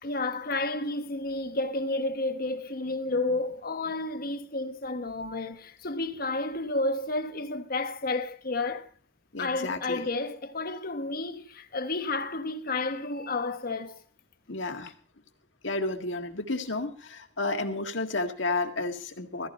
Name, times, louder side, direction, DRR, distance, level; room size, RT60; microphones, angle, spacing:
voice 1, 0.0-8.9 9.4-14.0, left 2 dB, 50° left, 1.3 m, -31 dB
voice 2, 9.3-10.0 14.5-14.9 15.6-19.5, left 2 dB, 70° left, 1.8 m, -31 dB
16.0 x 15.0 x 4.3 m
head